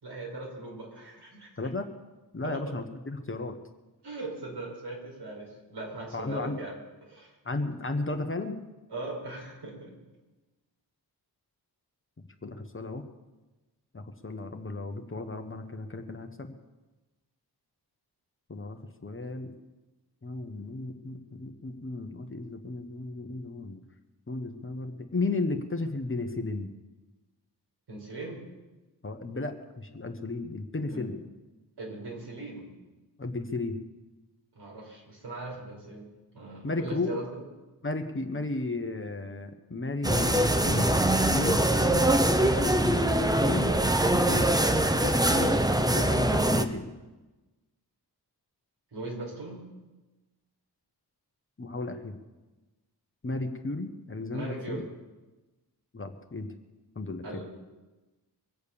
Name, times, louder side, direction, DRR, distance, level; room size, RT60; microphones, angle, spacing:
voice 1, 0.0-1.5 2.4-2.6 4.0-6.8 7.1-7.4 8.9-9.9 27.9-28.4 30.9-31.1 31.8-32.7 34.5-36.1 36.3-37.4 48.9-49.6 54.3-54.8 57.2-57.4, right 2 dB, 75° right, -2 dB, 5.5 m, -39 dB
voice 2, 1.6-1.9 2.3-3.6 6.1-6.6 7.4-8.6 12.4-13.0 13.9-16.5 18.5-19.5 20.2-23.8 24.3-26.7 29.0-31.2 33.2-33.8 36.6-37.2 37.8-40.9 41.3-43.8 44.2-44.5 44.9-45.6 45.9-46.9 51.6-52.2 53.2-54.8 55.9-56.5 56.9-57.2, left 2 dB, 30° left, 6 dB, 1.3 m, -34 dB
sound 1, 40.0-46.6, right 1 dB, 10° right, 0.9 m, -23 dB
24.0 x 8.0 x 7.0 m, 1.1 s
wide cardioid pair, 80°, 40 cm